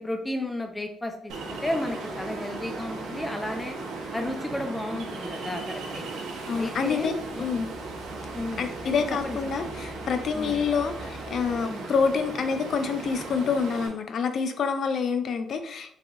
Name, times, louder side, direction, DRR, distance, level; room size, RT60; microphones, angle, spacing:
voice 1, 0.0-3.8 4.1-6.0 6.5-7.5 8.3-8.9 9.2-9.7 10.3-10.6 11.6-11.9, left 1 dB, 15° left, 4 dB, 0.6 m, -33 dB
Ocean, 1.3-13.9, right 3 dB, 90° right, 0.7 m, -37 dB
sound 1, 6.3-11.5, left 1 dB, 15° right, 1.1 m, -46 dB
voice 2, 6.5-7.7 8.6-15.9, left 5 dB, 60° left, 8 dB, 0.4 m, -27 dB
3.4 x 3.3 x 2.5 m, 0.66 s
cardioid pair, 90°, 0 cm